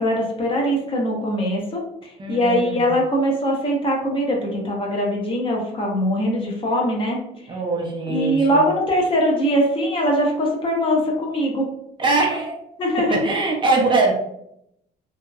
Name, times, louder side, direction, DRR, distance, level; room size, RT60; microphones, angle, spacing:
voice 1, 0.0-7.2 8.1-11.7 12.8-13.2, equal, 30° left, -1 dB, 0.7 m, -22 dB
voice 2, 2.2-3.0 7.5-8.7 12.0-12.6 13.0-14.1, right 3 dB, 30° right, -1 dB, 0.5 m, -22 dB
2.7 x 2.1 x 2.3 m, 0.77 s
cardioid pair, 110°, 17 cm